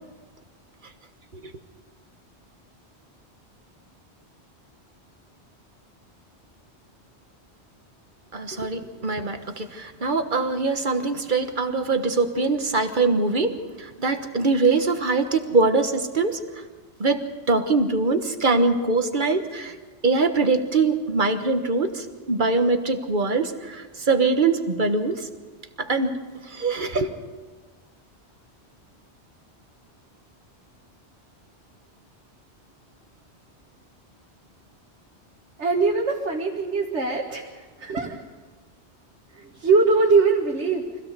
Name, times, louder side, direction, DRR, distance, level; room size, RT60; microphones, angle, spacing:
voice 1, 8.3-13.5 13.8-16.4 17.0-19.7 20.0-25.3 25.8-26.1 26.5-27.1, right 3 dB, 45° right, 7 dB, 1.5 m, -23 dB
voice 2, 35.6-37.5 37.8-38.2 39.4-41.0, right 4 dB, 80° right, -1 dB, 1.9 m, -22 dB
25.0 x 16.5 x 6.8 m, 1.3 s
omnidirectional pair, 1.2 m